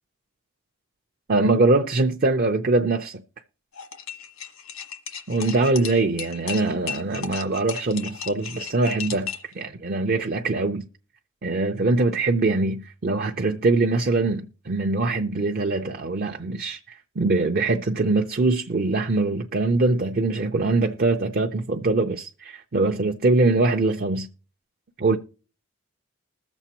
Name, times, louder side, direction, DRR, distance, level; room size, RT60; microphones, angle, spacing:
voice 1, 1.3-3.2 5.3-10.9 11.4-24.3 25.0-25.2, right 3 dB, 45° right, 0.5 m, -23 dB
sound 1, 3.7-9.5, left 7 dB, 85° left, 1.4 m, -35 dB
21.0 x 7.0 x 2.9 m
head